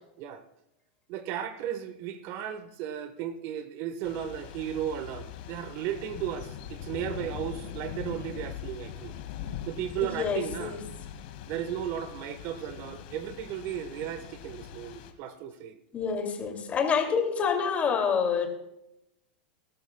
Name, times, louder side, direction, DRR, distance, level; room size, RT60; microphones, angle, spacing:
voice 1, 1.1-9.1 9.7-10.8 11.5-15.8, right 10 dB, 50° right, 1.2 m, -35 dB
Thunder / Rain, 4.0-15.1, left 9 dB, 65° left, 1.9 m, -42 dB
voice 2, 10.0-10.8 15.9-18.5, left 6 dB, 25° left, 2.5 m, -27 dB
20.0 x 12.5 x 2.3 m
hypercardioid pair, 120°, 5 cm